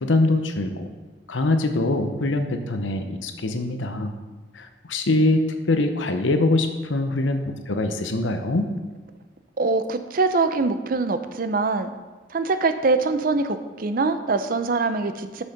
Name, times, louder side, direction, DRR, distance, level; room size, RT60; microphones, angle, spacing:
voice 1, 0.0-0.9 1.3-4.1 4.5-8.7, left 2 dB, 90° left, 7 dB, 0.8 m, -23 dB
voice 2, 9.6-11.9 12.3-15.4, right 3 dB, 50° right, 10 dB, 0.5 m, -23 dB
6.4 x 6.3 x 5.8 m, 1.3 s
head